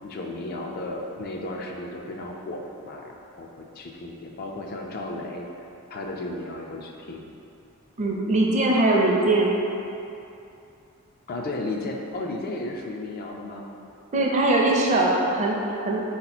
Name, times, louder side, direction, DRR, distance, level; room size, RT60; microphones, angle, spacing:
voice 1, 0.0-3.5 3.8-5.5 5.9-7.3 11.3-13.7, left 2 dB, 45° left, 1 dB, 0.4 m, -34 dB
voice 2, 8.0-9.5 14.1-16.0, right 2 dB, 30° right, -2 dB, 0.5 m, -21 dB
4.0 x 2.9 x 4.0 m, 2.7 s
head